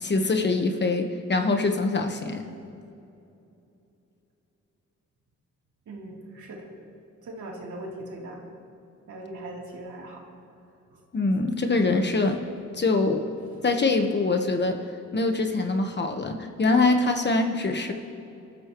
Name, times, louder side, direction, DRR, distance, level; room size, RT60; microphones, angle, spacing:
voice 1, 0.0-2.4 11.1-12.4 12.7-13.2 13.6-14.8 15.1-17.9, left 3 dB, 35° left, 5 dB, 1.2 m, -24 dB
voice 2, 5.9-6.7 7.2-8.4 9.1-10.2 10.9-11.0 11.6-11.9, right 1 dB, 75° right, -3 dB, 3.3 m, -40 dB
27.5 x 13.5 x 3.1 m, 2.7 s
cardioid pair, 110°, 30 cm